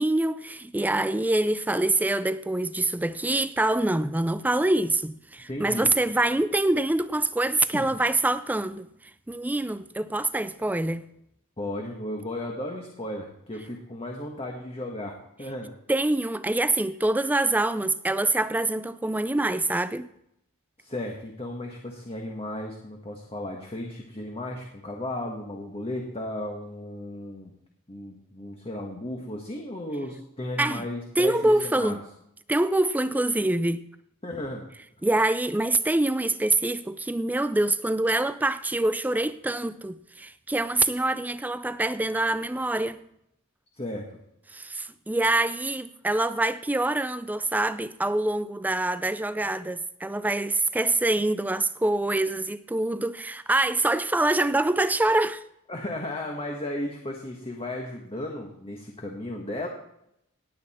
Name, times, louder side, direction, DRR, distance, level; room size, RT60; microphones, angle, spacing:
voice 1, 0.0-8.9 9.3-11.1 15.9-20.1 30.6-30.9 31.2-32.0 32.5-33.8 35.0-43.0 44.5-55.4, right 2 dB, 10° right, 0.4 m, -25 dB
voice 2, 5.5-5.9 7.7-7.9 11.6-15.7 20.8-27.5 27.9-32.0 34.2-34.7 43.8-44.0 55.7-59.7, left 1 dB, 25° left, 1.5 m, -35 dB
18.5 x 8.5 x 4.3 m
head